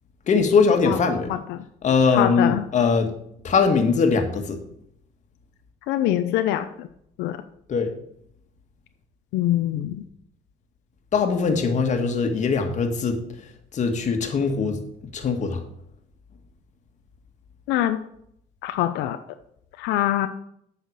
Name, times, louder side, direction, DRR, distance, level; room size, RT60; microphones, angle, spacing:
voice 1, 0.3-1.3 1.8-3.1 3.4-4.6 7.7-7.9 11.1-13.2 13.7-14.8 15.1-15.6, left 5 dB, 45° left, 5 dB, 1.7 m, -21 dB
voice 2, 1.3-1.6 2.1-2.7 5.9-6.9 7.2-7.4 9.3-10.0 17.7-18.0 18.6-19.2 19.8-20.3, left 13 dB, 90° left, 8 dB, 0.6 m, -24 dB
8.1 x 5.8 x 6.6 m, 0.71 s
cardioid pair, 110°, 17 cm